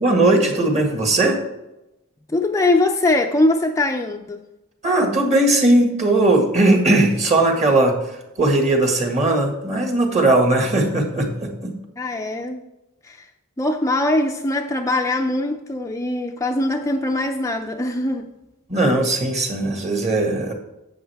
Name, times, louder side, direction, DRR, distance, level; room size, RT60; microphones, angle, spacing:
voice 1, 0.0-1.4 4.8-8.0 8.4-11.7 18.7-20.5, right 2 dB, 30° right, 3 dB, 1.8 m, -18 dB
voice 2, 2.3-4.4 12.0-12.6 13.0-13.3 13.6-18.3, left 2 dB, 15° left, 3 dB, 0.5 m, -21 dB
11.0 x 8.0 x 3.5 m, 0.93 s
head